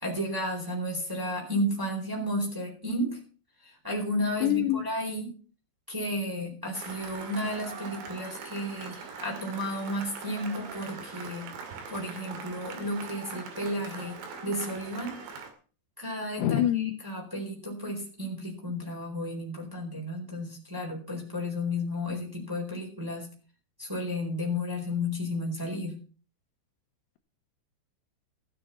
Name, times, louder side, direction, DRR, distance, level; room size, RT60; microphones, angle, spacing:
voice 1, 0.0-3.2 3.6-5.3 5.9-11.5 11.9-14.2 14.4-15.3 16.0-23.3 23.8-26.0, left 1 dB, 5° right, -1 dB, 3.2 m, -33 dB
voice 2, 4.4-4.9 16.4-17.0, left 13 dB, 75° left, 7 dB, 2.8 m, -25 dB
Cheering / Applause, 6.7-15.5, right 5 dB, 70° right, 4.2 m, -42 dB
15.5 x 6.9 x 7.0 m, 0.38 s
omnidirectional pair, 5.5 m